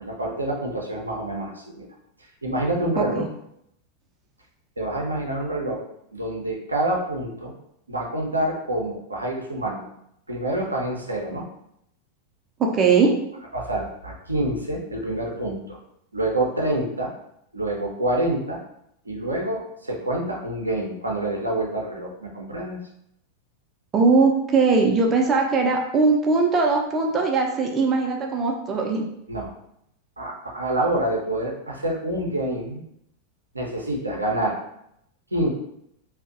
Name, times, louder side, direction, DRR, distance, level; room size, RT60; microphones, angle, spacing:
voice 1, 0.0-1.9 2.4-3.2 4.8-5.8 6.1-7.5 7.9-9.9 10.3-11.4 13.5-15.8 16.1-17.1 17.5-18.6 19.1-22.8 29.3-29.5 30.2-32.8 33.5-34.6 35.3-35.5, right 1 dB, 80° right, -1 dB, 0.5 m, -27 dB
voice 2, 3.0-3.3 12.6-13.1 23.9-29.0, right 4 dB, 25° right, 1 dB, 0.4 m, -20 dB
2.5 x 2.0 x 2.5 m, 0.77 s
figure-of-eight pair, 90°, 0 cm